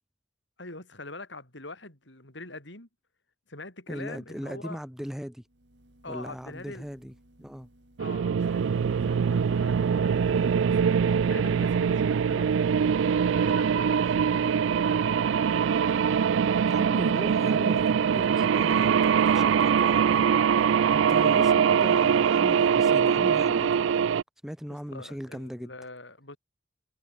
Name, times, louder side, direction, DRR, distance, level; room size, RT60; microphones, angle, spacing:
voice 1, 0.6-2.9 3.5-4.8 6.0-6.9 8.0-11.0 11.3-12.6 13.2-16.1 24.9-26.4, left 2 dB, 70° left, 6.1 m, -44 dB
voice 2, 3.9-5.4 6.1-7.1 7.4-7.7 16.6-20.3 20.9-23.8 24.4-25.7, equal, ahead, 1.4 m, -38 dB
sound 1, 5.5-22.7, right 2 dB, 65° right, 3.5 m, -51 dB
sound 2, 8.0-24.2, right 7 dB, 85° right, 0.4 m, -23 dB
head